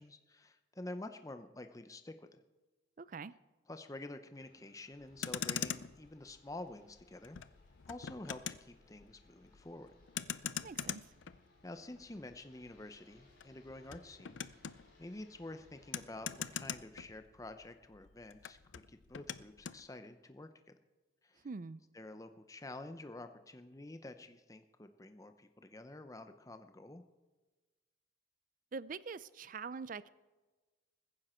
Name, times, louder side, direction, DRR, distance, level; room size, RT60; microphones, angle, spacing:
voice 1, 0.0-2.4 3.7-7.4 7.9-9.9 11.6-14.4 15.0-20.7 21.2-21.5 21.9-27.0, left 2 dB, 20° left, 8 dB, 0.6 m, -49 dB
voice 2, 3.0-3.3 10.6-11.0 21.4-21.8 28.7-30.1, right 4 dB, 45° right, 18 dB, 0.4 m, -44 dB
sound 1, 4.3-16.7, left 3 dB, 50° left, 4.6 m, -68 dB
Motor vehicle (road), 5.0-17.7 17.9-19.8, left 8 dB, 75° left, 0.5 m, -44 dB
21.0 x 10.0 x 4.4 m, 1.3 s
head